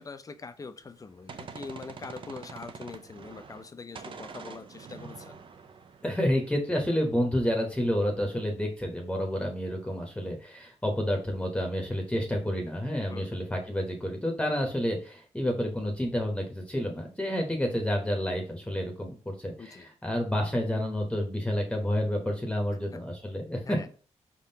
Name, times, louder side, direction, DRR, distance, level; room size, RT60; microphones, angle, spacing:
voice 1, 0.0-5.4 13.1-13.4 19.6-19.9 23.7-23.9, left 4 dB, 30° left, 10 dB, 0.5 m, -43 dB
Gunshot gunfire, 0.8-3.7 4.0-6.7, right 5 dB, 45° right, 0.6 m, -45 dB
voice 2, 6.0-23.8, equal, 10° left, 2 dB, 1.0 m, -29 dB
4.7 x 3.7 x 2.8 m, 0.40 s
cardioid pair, 90°, 12 cm